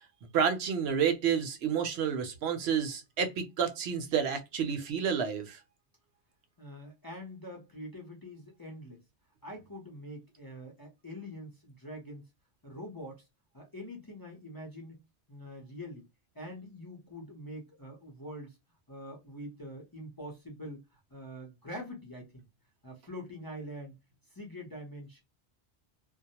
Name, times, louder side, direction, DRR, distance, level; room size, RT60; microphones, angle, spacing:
voice 1, 0.3-5.6, right 7 dB, 70° right, 0.8 m, -30 dB
voice 2, 6.6-9.0 9.4-12.2 12.6-13.2 13.5-15.0 15.3-16.1 16.3-18.6 18.9-22.5 22.8-24.0 24.3-25.2, equal, 25° left, 0.6 m, -44 dB
2.2 x 2.0 x 2.8 m
omnidirectional pair, 1.2 m